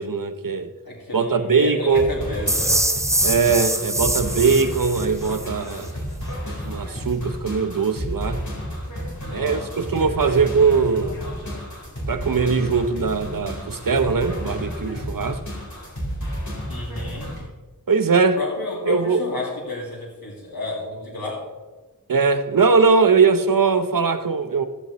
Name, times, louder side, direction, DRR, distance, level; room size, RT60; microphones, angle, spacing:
voice 1, 0.0-0.7 1.1-2.1 3.2-6.0 6.6-8.4 9.3-11.2 12.1-15.4 17.9-18.4 18.9-19.2 22.1-24.7, right 5 dB, 60° right, 0.8 m, -20 dB
voice 2, 0.9-2.8 9.2-10.4 16.7-17.3 18.4-21.4, left 2 dB, 65° left, 2.3 m, -31 dB
sound 1, 1.9-17.4, equal, 50° left, 3.9 m, -31 dB
sound 2, 2.5-5.5, right 1 dB, 10° right, 0.6 m, -23 dB
15.0 x 8.3 x 3.1 m
wide cardioid pair, 45°, 38 cm